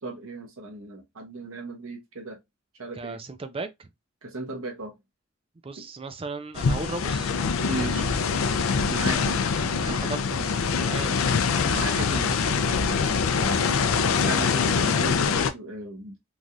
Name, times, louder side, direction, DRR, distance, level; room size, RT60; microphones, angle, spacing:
voice 1, 0.0-2.4 2.7-3.2 4.2-5.0 5.8-5.9 7.7-8.1 8.8-9.4 9.8-10.1 11.6-16.2, right 2 dB, 80° right, 0.9 m, -36 dB
voice 2, 3.0-3.9 5.6-7.3 7.6-8.2 9.1-12.1, right 3 dB, 25° right, 0.4 m, -38 dB
sound 1, 6.5-15.5, left 5 dB, 80° left, 0.4 m, -24 dB
3.2 x 2.4 x 2.6 m
head